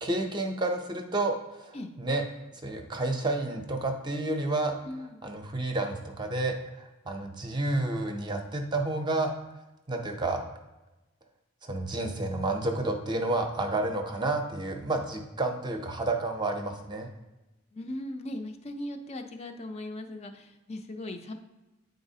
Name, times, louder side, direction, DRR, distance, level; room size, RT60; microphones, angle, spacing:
voice 1, 0.0-2.2 2.5-4.8 5.2-9.3 9.9-10.4 11.6-17.1, right 2 dB, 20° right, 4 dB, 0.5 m, -30 dB
voice 2, 4.8-5.2 17.7-21.3, left 1 dB, 30° left, 5 dB, 0.4 m, -38 dB
8.8 x 3.9 x 2.7 m, 1.0 s
head